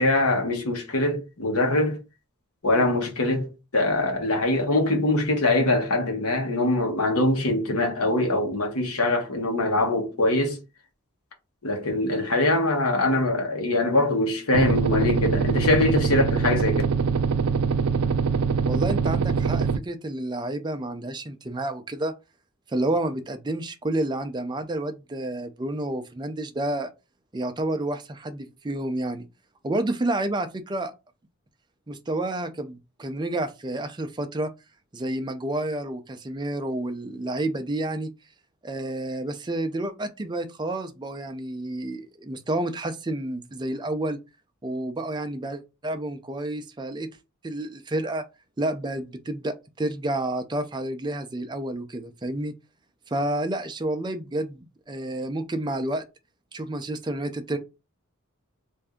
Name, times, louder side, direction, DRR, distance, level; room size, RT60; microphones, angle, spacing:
voice 1, 0.0-2.0 2.6-10.6 11.6-16.8, left 2 dB, 80° left, 1.2 m, -23 dB
sound 1, 14.5-19.8, right 5 dB, 85° right, 0.4 m, -23 dB
voice 2, 18.7-22.1 22.7-26.9 27.3-29.3 29.6-30.9 31.9-34.5 34.9-38.1 38.6-44.2 44.6-47.1 47.4-48.2 48.6-52.5 53.1-56.0 56.5-57.6, right 1 dB, 20° right, 0.5 m, -30 dB
3.3 x 2.6 x 3.5 m
head